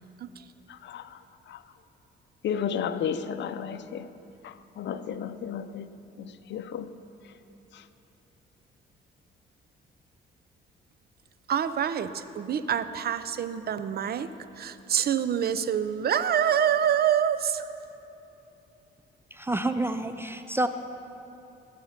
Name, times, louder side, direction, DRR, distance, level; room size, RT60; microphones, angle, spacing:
voice 1, 0.7-1.2 1.5-1.6 2.4-4.1 4.4-6.9 7.7-7.8, left 8 dB, 65° left, 0.7 m, -33 dB
voice 2, 11.5-14.3 14.6-17.6, right 9 dB, 50° right, 0.7 m, -26 dB
voice 3, 19.3-20.7, right 1 dB, 10° right, 0.5 m, -28 dB
20.0 x 7.4 x 5.8 m
cardioid pair, 90°, 20 cm